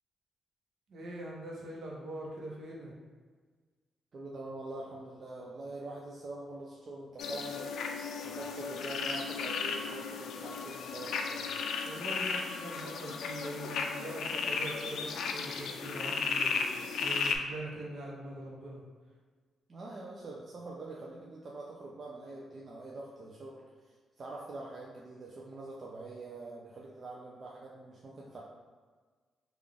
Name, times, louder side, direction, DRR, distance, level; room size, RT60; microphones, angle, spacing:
voice 1, 0.9-2.9 11.8-18.8, right 1 dB, 65° right, -3 dB, 0.8 m, -43 dB
voice 2, 4.1-7.6 8.2-11.5 19.7-23.6 24.2-28.4, right 2 dB, 40° right, -4 dB, 0.4 m, -44 dB
sound 1, 7.2-17.3, left 5 dB, 75° left, 0.3 m, -35 dB
3.7 x 2.4 x 3.4 m, 1.5 s
cardioid pair, 125°, 0 cm